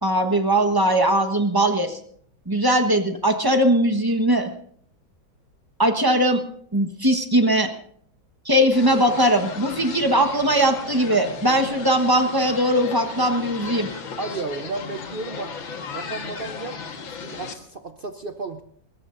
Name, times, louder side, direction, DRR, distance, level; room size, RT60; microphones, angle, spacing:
voice 1, 0.0-2.0 2.5-4.5 5.8-6.4 6.7-7.7 8.4-13.9, right 1 dB, 15° right, 6 dB, 1.0 m, -20 dB
sound 1, 8.7-17.5, left 5 dB, 75° left, 2.3 m, -35 dB
voice 2, 14.2-15.5 15.9-18.6, right 3 dB, 80° right, 6 dB, 0.4 m, -33 dB
21.5 x 19.0 x 2.6 m, 0.62 s
omnidirectional pair, 2.2 m